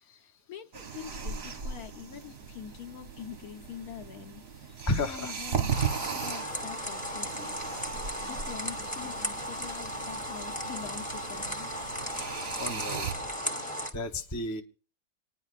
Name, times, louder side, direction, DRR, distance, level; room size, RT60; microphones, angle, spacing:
voice 1, 0.2-4.4 4.7-5.8 6.1-7.5 8.3-11.7, left 9 dB, 65° left, 5 dB, 1.4 m, -45 dB
sound 1, 0.7-13.1, right 6 dB, 45° right, 0.9 m, -38 dB
voice 2, 4.9-5.3 6.0-6.5 12.2-13.1 13.9-14.6, left 2 dB, 25° left, 5 dB, 0.3 m, -33 dB
sound 2, 5.7-13.9, equal, 5° left, 1.0 m, -36 dB
27.5 x 10.0 x 2.5 m, 0.38 s
omnidirectional pair, 1.8 m